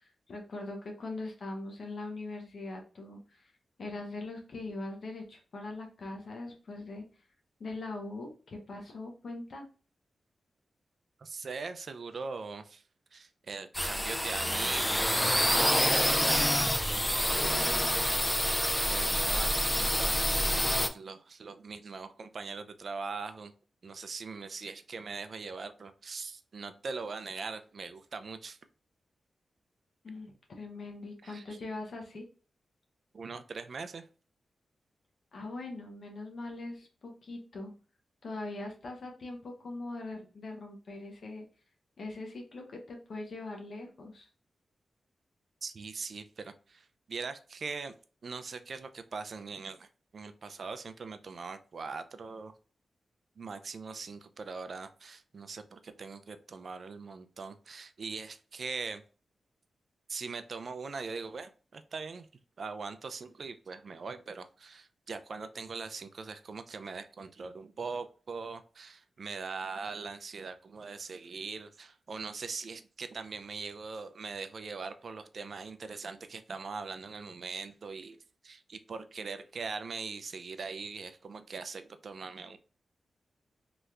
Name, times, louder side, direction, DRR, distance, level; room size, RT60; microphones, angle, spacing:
voice 1, 0.3-3.5 3.8-7.0 7.6-9.7 30.0-32.3 35.3-37.7 38.2-41.5 42.0-44.3, left 2 dB, 70° left, 2 dB, 0.8 m, -41 dB
voice 2, 11.2-12.8 13.1-16.5 16.9-17.8 18.8-23.5 23.8-28.6 31.2-31.6 33.1-34.1 45.6-47.9 48.2-52.5 53.4-59.0 60.1-62.3 62.6-82.6, right 4 dB, 65° right, 10 dB, 0.4 m, -41 dB
sound 1, 13.7-20.9, equal, 10° left, 0.4 m, -27 dB
3.2 x 2.9 x 2.4 m, 0.37 s
cardioid pair, 65°, 0 cm